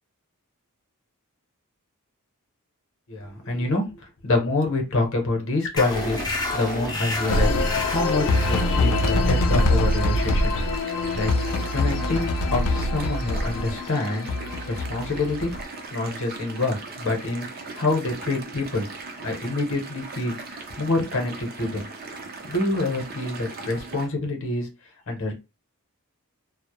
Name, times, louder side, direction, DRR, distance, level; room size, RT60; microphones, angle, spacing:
voice 1, 3.1-6.2 6.5-7.6 7.8-11.3 11.7-14.3 14.7-15.5 15.9-17.5 17.8-18.9 19.2-21.9 22.5-24.7 25.1-25.3, left 2 dB, 60° left, 3 dB, 0.7 m, -26 dB
sound 1, 5.8-12.9, left 1 dB, 20° left, 0.4 m, -30 dB
sound 2, 5.9-24.1, right 3 dB, 40° right, 0.5 m, -39 dB
sound 3, 7.3-15.6, left 2 dB, 85° left, 0.4 m, -24 dB
2.1 x 2.0 x 2.9 m, 0.27 s
head